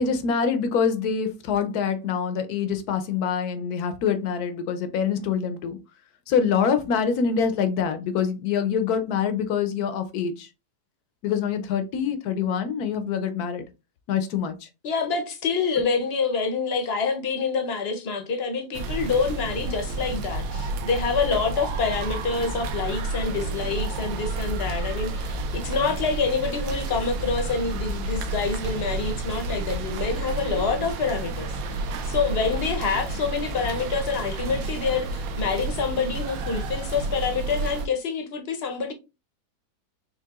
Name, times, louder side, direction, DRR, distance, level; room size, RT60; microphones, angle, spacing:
voice 1, 0.0-5.8 6.3-10.5 11.2-13.6 14.1-14.7, left 6 dB, 70° left, 1.1 m, -25 dB
voice 2, 14.8-38.9, left 5 dB, 50° left, 0.8 m, -27 dB
sound 1, 18.7-37.9, right 3 dB, 70° right, 0.9 m, -30 dB
4.6 x 3.2 x 2.3 m
omnidirectional pair, 1.8 m